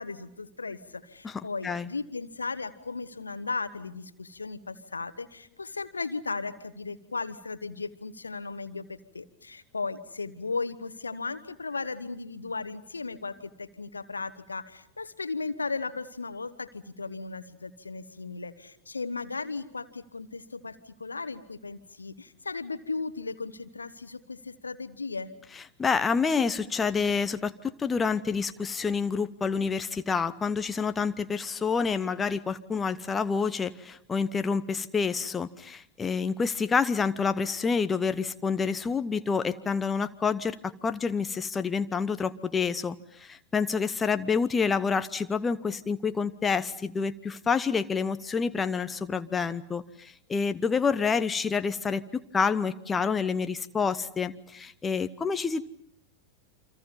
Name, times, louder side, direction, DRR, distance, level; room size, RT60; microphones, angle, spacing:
voice 1, 0.0-25.3, left 4 dB, 80° left, 13 dB, 1.4 m, -36 dB
voice 2, 1.2-1.9 25.8-55.6, left 5 dB, 15° left, 11 dB, 0.9 m, -28 dB
29.0 x 25.5 x 5.5 m, 0.69 s
figure-of-eight pair, 90°, 0 cm